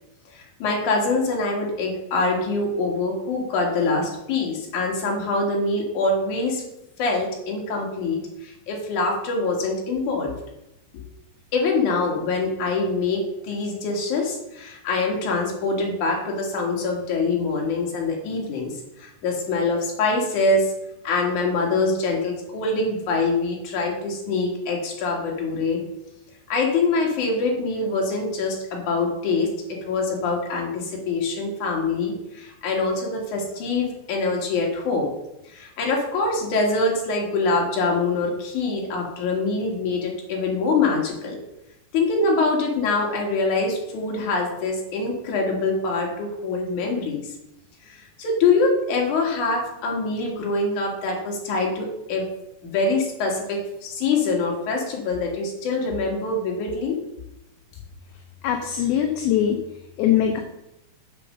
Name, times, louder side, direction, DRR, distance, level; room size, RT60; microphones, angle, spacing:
voice 1, 0.3-6.6 7.0-10.3 11.5-18.7 19.0-20.7 21.0-25.8 26.5-35.1 35.5-41.4 41.9-47.3 47.8-52.3 52.6-57.0, left 3 dB, 55° left, -1 dB, 3.1 m, -24 dB
voice 2, 58.4-59.6 60.0-60.4, left 10 dB, 75° left, 3 dB, 2.6 m, -21 dB
7.2 x 6.6 x 6.5 m, 0.88 s
omnidirectional pair, 4.6 m